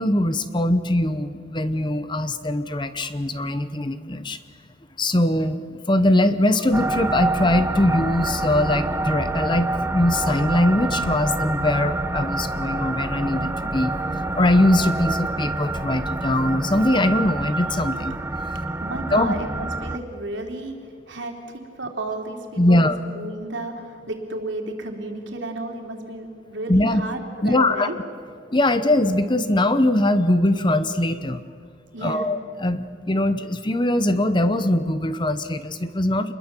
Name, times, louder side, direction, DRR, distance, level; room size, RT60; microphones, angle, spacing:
voice 1, 0.0-4.4 5.0-13.9 14.3-18.1 19.1-19.3 22.6-23.0 26.7-27.0 27.4-27.9 28.5-31.4 32.0-36.3, left 1 dB, 25° left, 11 dB, 0.9 m, -21 dB
sound 1, 6.7-20.0, right 2 dB, 15° right, 0.8 m, -27 dB
voice 2, 18.5-20.8 21.1-27.9 31.9-32.3, right 2 dB, 70° right, 3 dB, 3.4 m, -33 dB
27.0 x 21.5 x 7.5 m, 2.2 s
head